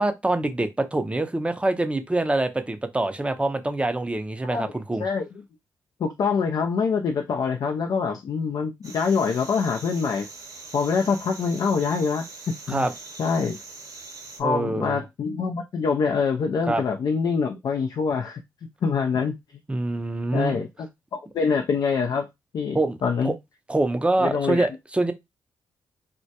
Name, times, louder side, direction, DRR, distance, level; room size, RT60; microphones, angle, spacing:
voice 1, 0.0-5.0 12.7-12.9 14.4-15.0 16.7-16.8 19.7-20.6 22.7-23.0 23.2-23.3 23.7-25.1, right 2 dB, 15° right, 0.5 m, -25 dB
voice 2, 5.0-5.4 6.0-10.3 10.7-12.9 13.2-13.6 14.4-18.4 18.8-19.4 20.3-20.9 21.1-22.3 22.5-23.4 24.2-24.7, left 5 dB, 55° left, 0.4 m, -25 dB
sound 1, 8.8-14.4, right 3 dB, 45° right, 0.8 m, -42 dB
2.1 x 2.1 x 2.7 m
hypercardioid pair, 45°, 8 cm